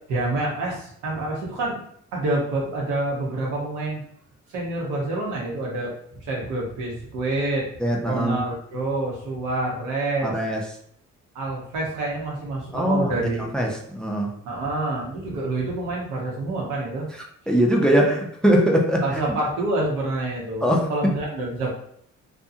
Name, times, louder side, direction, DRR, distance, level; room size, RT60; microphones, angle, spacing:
voice 1, 0.1-1.9 2.1-4.0 4.5-5.9 6.2-7.7 8.1-10.3 11.3-13.5 14.4-17.1 19.0-21.7, right 2 dB, 85° right, -2 dB, 1.0 m, -27 dB
voice 2, 7.8-8.4 10.2-10.6 12.7-14.3 17.5-19.2 20.6-20.9, equal, 5° left, 0 dB, 0.4 m, -21 dB
2.6 x 2.3 x 2.6 m, 0.66 s
cardioid pair, 90°, 30 cm